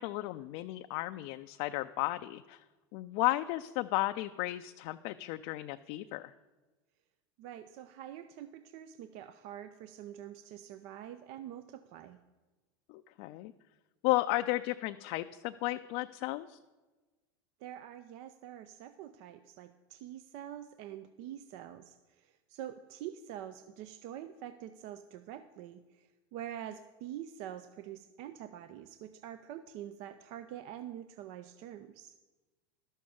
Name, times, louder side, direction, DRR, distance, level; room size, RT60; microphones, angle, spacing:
voice 1, 0.0-2.6 2.9-6.3 12.9-13.5 14.0-16.6, left 18 dB, 55° left, 8 dB, 0.4 m, -34 dB
voice 2, 7.4-12.2 17.6-32.2, right 11 dB, 55° right, 11 dB, 0.5 m, -46 dB
12.0 x 6.3 x 7.0 m, 1.2 s
supercardioid pair, 125°, 13 cm